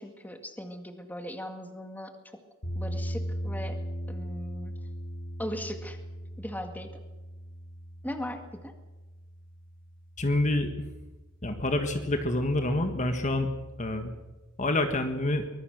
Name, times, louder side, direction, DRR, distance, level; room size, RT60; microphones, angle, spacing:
voice 1, 0.0-2.4 2.8-3.8 4.1-4.7 5.4-6.0 6.4-6.9 8.0-8.7, equal, 10° left, 6 dB, 1.9 m, -38 dB
sound 1, 2.6-10.7, equal, 60° left, 4.3 m, -38 dB
voice 2, 10.2-10.7 11.4-13.5 13.8-14.1 14.6-15.5, left 1 dB, 35° left, 7 dB, 1.7 m, -27 dB
24.0 x 20.5 x 6.6 m, 1.1 s
head